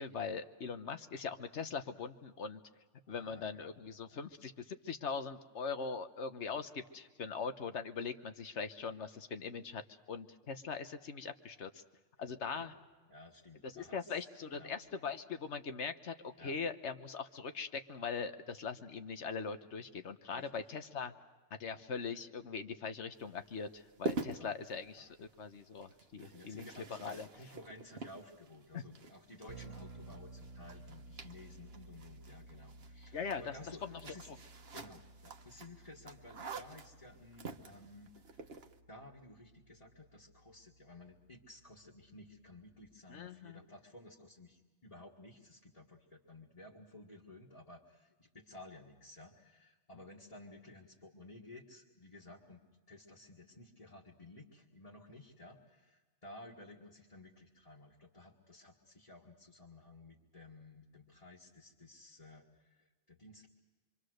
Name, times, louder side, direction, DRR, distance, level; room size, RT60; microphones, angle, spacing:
voice 1, 0.0-2.6 3.1-9.8 10.1-11.8 12.2-12.7 13.6-21.1 21.6-27.3 28.7-28.8 33.1-33.6 33.8-34.0 43.1-43.6, left 5 dB, 70° left, 9 dB, 1.4 m, -41 dB
voice 2, 3.1-3.5 4.1-4.2 12.6-12.7 13.1-14.8 16.4-16.6 20.3-20.6 24.2-24.6 25.0-25.1 26.3-34.3 34.7-38.6 38.9-52.6 52.9-63.5, left 2 dB, 30° left, -4 dB, 2.0 m, -55 dB
sound 1, 23.1-38.8, right 3 dB, 55° right, 1.3 m, -47 dB
sound 2, 29.5-42.9, right 3 dB, 90° right, 1.3 m, -56 dB
26.5 x 24.5 x 6.5 m, 1.3 s
omnidirectional pair, 1.2 m